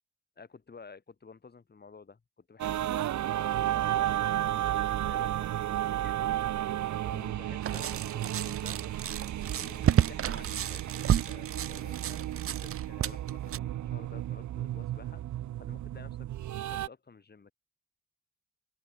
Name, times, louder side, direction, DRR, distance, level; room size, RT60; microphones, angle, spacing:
voice 1, 0.4-6.2 7.1-8.8 9.6-15.2 15.6-16.3 16.6-17.5, left 5 dB, 35° left, 7.6 m, -52 dB
sound 1, 2.6-16.9, right 13 dB, 70° right, 1.5 m, -33 dB
sound 2, 7.6-13.6, right 10 dB, 50° right, 0.8 m, -31 dB
sound 3, 8.7-13.5, left 9 dB, 60° left, 7.1 m, -59 dB
open air
cardioid pair, 90°, 30 cm